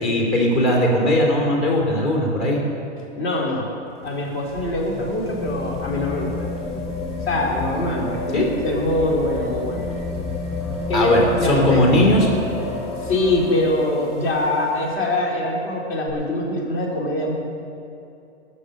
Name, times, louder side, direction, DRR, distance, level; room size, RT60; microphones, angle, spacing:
voice 1, 0.0-2.6 8.3-8.5 10.9-12.3, left 1 dB, 40° left, -1 dB, 3.1 m, -18 dB
voice 2, 3.2-3.7 4.0-6.5 7.3-9.9 10.9-11.8 13.0-17.3, left 1 dB, 60° left, -1 dB, 3.8 m, -23 dB
sound 1, 3.9-14.9 16.1-16.2, left 2 dB, 20° left, 3.2 m, -30 dB
19.5 x 6.7 x 6.6 m, 2.6 s
hypercardioid pair, 145°, 35 cm